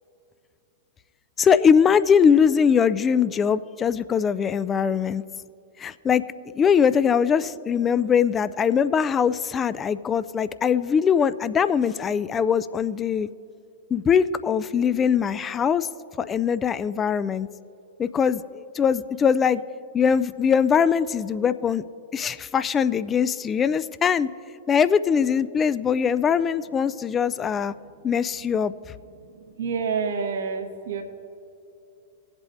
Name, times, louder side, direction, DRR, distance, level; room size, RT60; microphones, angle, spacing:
voice 1, 1.4-5.2 5.8-6.2 6.5-13.3 13.9-15.9 16.2-17.5 18.0-19.6 19.9-21.8 22.1-24.3 24.7-27.7 28.0-28.7, left 7 dB, 25° left, 16 dB, 0.3 m, -21 dB
voice 2, 29.6-31.0, right 5 dB, 70° right, 4 dB, 1.1 m, -27 dB
19.5 x 8.1 x 2.6 m, 2.7 s
hypercardioid pair, 105°, 0 cm